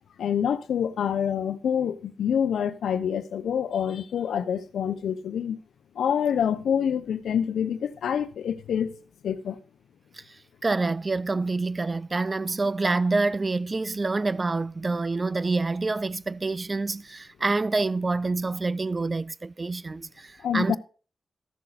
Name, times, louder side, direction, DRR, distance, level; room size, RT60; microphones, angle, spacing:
voice 1, 0.2-5.6 5.9-9.0 9.2-9.6 20.4-20.8, left 8 dB, 85° left, 0.7 m, -26 dB
voice 2, 10.1-20.8, right 3 dB, 40° right, 0.4 m, -27 dB
13.0 x 6.7 x 4.1 m
cardioid pair, 50°, 0 cm